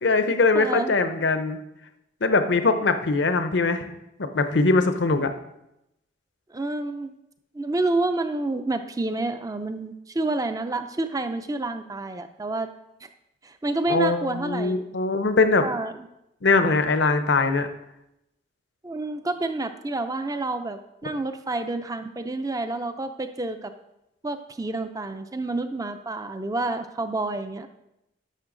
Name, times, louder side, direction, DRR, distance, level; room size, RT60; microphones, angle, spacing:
voice 1, 0.0-1.6 2.2-3.9 4.2-5.3 13.9-15.6 16.4-17.7, left 3 dB, 60° left, 9 dB, 0.7 m, -21 dB
voice 2, 0.5-0.9 6.5-7.1 7.5-12.7 13.0-13.1 13.4-14.8 15.6-15.9 18.8-23.7 24.2-27.7, right 2 dB, 20° right, 8 dB, 0.4 m, -29 dB
11.0 x 6.6 x 3.8 m, 0.86 s
head